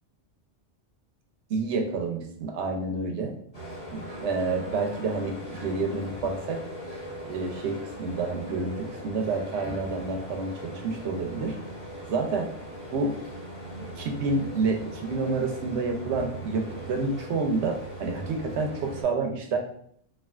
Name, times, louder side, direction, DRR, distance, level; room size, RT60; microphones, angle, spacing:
voice 1, 1.5-3.3 3.9-6.6 7.3-11.6 12.1-12.5 12.9-13.1 13.9-19.6, right 3 dB, 85° right, 3 dB, 0.9 m, -29 dB
sound 1, 3.5-19.0, right 1 dB, 35° left, 1.1 m, -40 dB
3.3 x 2.4 x 2.3 m, 0.65 s
omnidirectional pair, 1.2 m